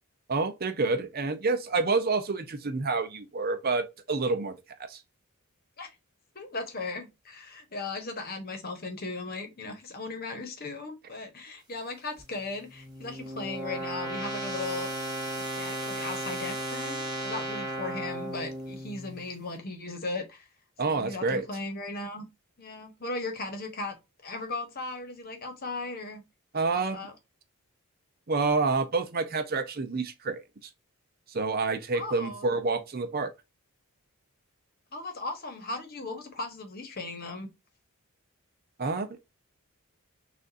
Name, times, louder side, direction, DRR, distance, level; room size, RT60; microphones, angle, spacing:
voice 1, 0.3-4.5 4.9-5.0 20.8-21.4 26.5-27.0 28.3-30.4 31.3-33.3 38.8-39.1, right 3 dB, 45° right, 0.6 m, -28 dB
voice 2, 6.3-14.9 15.4-20.5 20.8-22.3 22.6-23.9 24.2-26.2 26.7-27.1 31.9-32.5 34.9-37.5, left 3 dB, 45° left, 1.1 m, -37 dB
sound 1, 12.2-19.3, right 1 dB, 20° right, 1.3 m, -35 dB
6.3 x 2.5 x 2.6 m
head